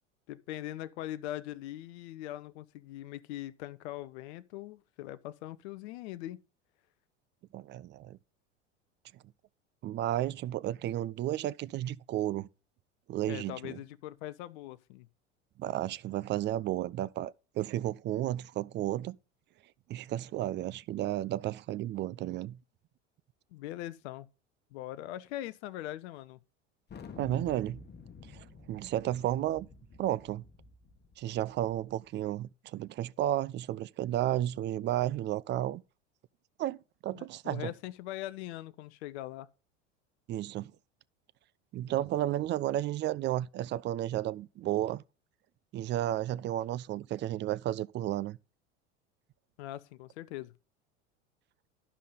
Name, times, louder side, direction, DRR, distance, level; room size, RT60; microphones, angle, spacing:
voice 1, 0.3-6.4 13.3-15.1 23.5-24.3 24.7-26.4 37.1-39.5 49.6-50.5, left 14 dB, 65° left, 0.7 m, -41 dB
voice 2, 7.5-8.2 9.8-12.5 13.1-13.8 15.6-19.2 19.9-22.6 27.2-27.8 28.3-29.7 30.0-30.4 31.2-35.8 36.6-36.8 37.0-37.7 40.3-40.7 41.7-45.0 45.7-48.4, right 13 dB, 30° right, 0.4 m, -33 dB
Thunder, 26.9-32.1, left 5 dB, 30° left, 1.4 m, -51 dB
12.5 x 5.5 x 3.8 m
hypercardioid pair, 85°, 36 cm